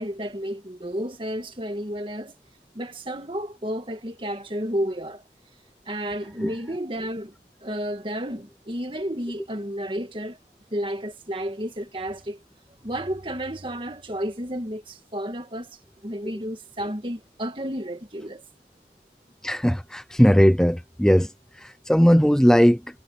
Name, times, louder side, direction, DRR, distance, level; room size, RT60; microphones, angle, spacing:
voice 1, 0.0-2.3 2.7-5.2 5.9-7.4 7.6-10.4 10.7-12.4 12.8-18.4, equal, 30° right, 1.8 m, -31 dB
voice 2, 19.4-21.3 21.6-22.8, equal, 5° left, 0.6 m, -18 dB
head